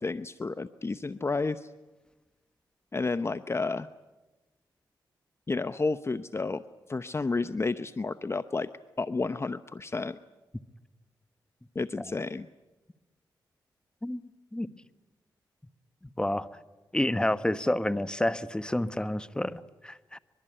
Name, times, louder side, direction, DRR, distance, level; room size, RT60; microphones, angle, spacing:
voice 1, 0.0-1.7 2.9-3.9 5.5-6.6 6.9-8.7 9.0-10.2 11.7-12.5, left 3 dB, 30° left, 13 dB, 0.8 m, -31 dB
voice 2, 16.9-20.2, left 1 dB, 10° left, 13 dB, 1.2 m, -29 dB
24.0 x 22.5 x 8.9 m, 1.1 s
cardioid pair, 55°, 8 cm